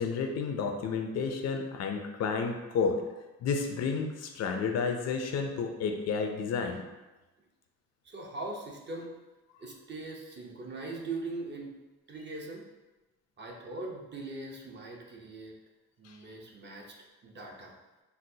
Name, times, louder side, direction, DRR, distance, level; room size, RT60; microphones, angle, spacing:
voice 1, 0.0-3.0 3.4-6.8 16.0-16.2, left 5 dB, 60° left, 4 dB, 0.4 m, -31 dB
voice 2, 8.0-9.1 9.6-11.7 12.1-12.6 13.4-15.5 16.0-17.0 17.2-17.7, right 2 dB, 35° right, -1 dB, 0.7 m, -40 dB
4.0 x 2.0 x 2.7 m, 1.1 s
cardioid pair, 90°, 30 cm